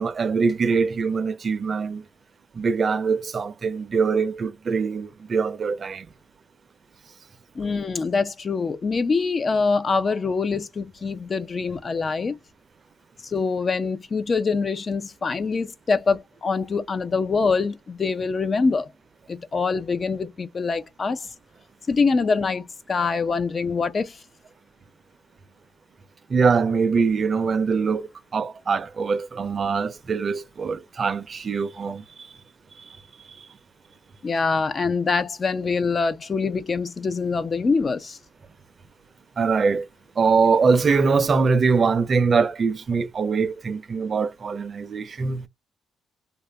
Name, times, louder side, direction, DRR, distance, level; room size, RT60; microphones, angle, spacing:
voice 1, 0.0-2.0 2.5-6.1 26.3-32.0 39.4-39.9 40.2-45.5, right 5 dB, 45° right, 0.5 m, -23 dB
voice 2, 7.6-12.4 13.2-18.9 19.3-21.3 21.9-24.2 34.2-38.2, left 4 dB, 40° left, 0.5 m, -24 dB
2.7 x 2.4 x 3.3 m
cardioid pair, 90°, 0 cm